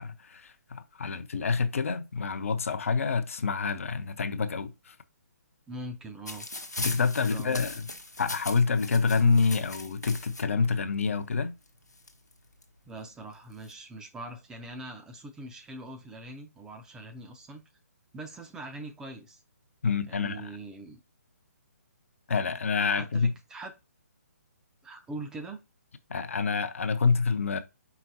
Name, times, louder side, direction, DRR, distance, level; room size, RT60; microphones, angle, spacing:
voice 1, 0.0-5.0 6.8-7.9 8.2-11.6 19.8-20.5 22.3-23.3 26.1-27.6, left 5 dB, 55° left, 0.5 m, -27 dB
voice 2, 5.7-6.5 7.2-7.6 12.9-17.6 18.1-19.4 20.1-21.0 22.9-23.7 24.8-25.6, right 2 dB, 5° right, 0.4 m, -42 dB
sound 1, 6.3-10.4 11.3-11.4 11.7-12.6 13.3-13.7, left 2 dB, 85° left, 0.9 m, -39 dB
4.8 x 3.7 x 2.7 m
figure-of-eight pair, 135°, 9 cm